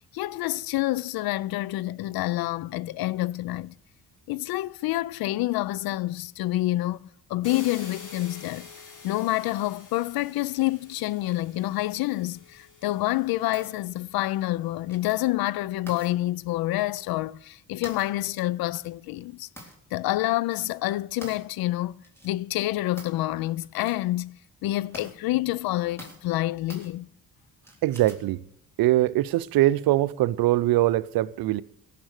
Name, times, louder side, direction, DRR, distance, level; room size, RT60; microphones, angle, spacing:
voice 1, 0.1-3.8 4.3-7.0 7.3-8.7 9.0-19.5 19.9-21.9 22.2-27.1, left 17 dB, 80° left, 0.5 m, -28 dB
sound 1, 7.4-14.3, left 5 dB, 60° left, 4.3 m, -47 dB
sound 2, 13.5-13.8 14.9-15.3 15.9-16.1 16.9-17.1 17.8-18.1 18.7-18.9 19.6-20.0 20.3-20.6 21.2-21.5 22.0-22.3 23.0-23.2 23.6-24.0 24.4-24.5 24.9-25.1 26.0-26.3 26.7-26.9 27.6-28.3, right 1 dB, 5° left, 4.0 m, -46 dB
voice 2, 27.8-28.4 28.8-31.6, right 15 dB, 80° right, 0.6 m, -22 dB
17.0 x 7.4 x 6.5 m
cardioid pair, 75°, 36 cm